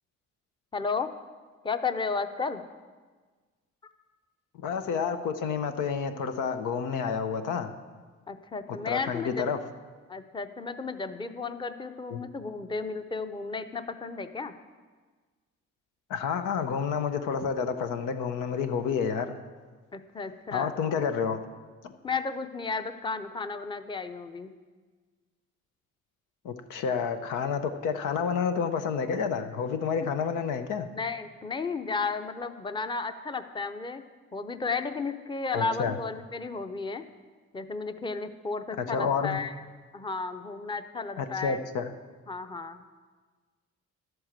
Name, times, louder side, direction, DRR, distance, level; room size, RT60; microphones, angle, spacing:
voice 1, 0.7-1.1 1.6-2.6 3.8-3.9 8.3-9.5 10.1-14.5 19.9-20.8 22.0-24.5 30.0-30.1 30.9-34.0 34.3-37.0 37.5-39.7 39.9-41.6 42.3-42.8, left 4 dB, 15° left, 9 dB, 0.7 m, -33 dB
voice 2, 4.6-7.7 8.9-9.6 12.1-12.2 16.1-19.3 20.5-21.4 21.8-21.9 26.4-30.9 35.5-35.9 38.8-39.4 41.2-41.9, left 6 dB, 90° left, 8 dB, 0.9 m, -29 dB
11.5 x 7.9 x 7.4 m, 1.4 s
cardioid pair, 90°, 30 cm